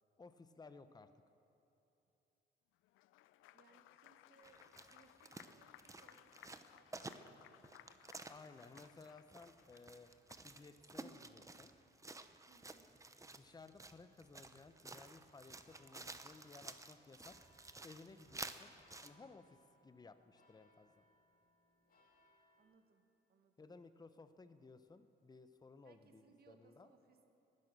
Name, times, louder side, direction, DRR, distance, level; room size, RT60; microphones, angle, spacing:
voice 1, 0.2-1.1 8.3-10.1 10.4-11.7 13.3-17.4 17.8-18.7 19.0-19.6 19.8-20.9 23.6-26.9, left 4 dB, 20° left, 10 dB, 0.8 m, -58 dB
Applause, 2.8-10.6, left 14 dB, 90° left, 0.4 m, -63 dB
voice 2, 3.5-4.6 4.9-8.0 12.5-12.9 22.6-23.7 25.8-27.3, right 5 dB, 50° right, 5 dB, 1.8 m, -69 dB
sound 1, 4.4-19.1, right 3 dB, 15° right, 0.8 m, -53 dB
sound 2, 15.5-22.6, left 1 dB, 45° left, 2.5 m, -74 dB
19.5 x 11.0 x 6.7 m, 2.9 s
cardioid pair, 90°, 20 cm